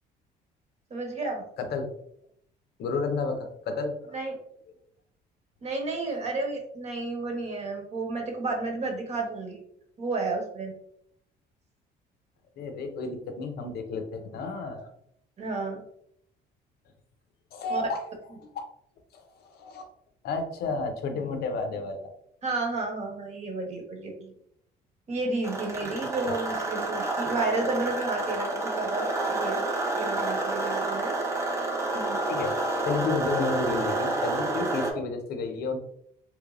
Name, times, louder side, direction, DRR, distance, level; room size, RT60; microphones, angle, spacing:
voice 1, 0.9-1.4 4.1-4.4 5.6-9.6 10.0-10.7 15.4-15.8 17.7-17.8 22.4-24.3 25.1-29.6 30.0-31.2 31.9-32.2, right 3 dB, 40° right, 1 dB, 1.1 m, -31 dB
voice 2, 1.6-1.9 2.8-4.2 12.6-14.9 17.5-18.0 18.4-18.5 19.1-19.9 20.2-22.1 25.7-25.9 26.2-26.3 32.3-35.8, left 4 dB, 70° left, 6 dB, 0.7 m, -32 dB
sound 1, 25.4-34.9, right 2 dB, 15° right, 0.7 m, -29 dB
3.3 x 3.1 x 2.4 m, 0.71 s
cardioid pair, 110°, 17 cm